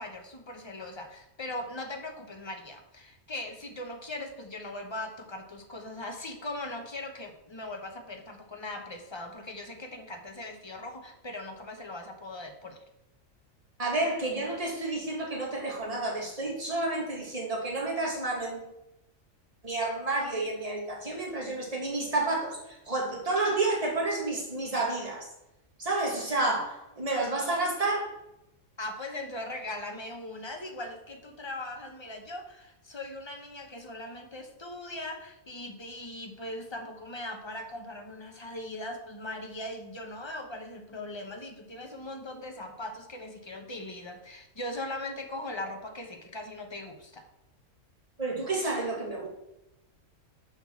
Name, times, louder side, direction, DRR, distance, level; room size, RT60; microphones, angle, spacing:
voice 1, 0.0-12.8 28.8-47.2, left 1 dB, 25° left, 4 dB, 0.8 m, -40 dB
voice 2, 13.8-18.6 19.6-25.3 25.8-28.1 48.2-49.3, right 2 dB, 25° right, -4 dB, 2.0 m, -30 dB
6.9 x 4.1 x 6.3 m, 0.88 s
omnidirectional pair, 1.4 m